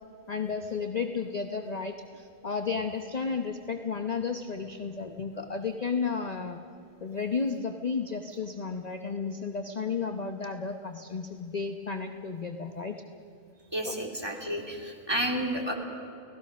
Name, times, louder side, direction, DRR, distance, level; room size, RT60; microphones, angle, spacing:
voice 1, 0.3-6.6 7.0-12.9 13.8-14.0, left 5 dB, 35° left, 6 dB, 1.0 m, -33 dB
voice 2, 13.7-15.7, right 1 dB, 20° right, 2 dB, 2.9 m, -31 dB
30.0 x 18.0 x 6.3 m, 2.7 s
omnidirectional pair, 1.4 m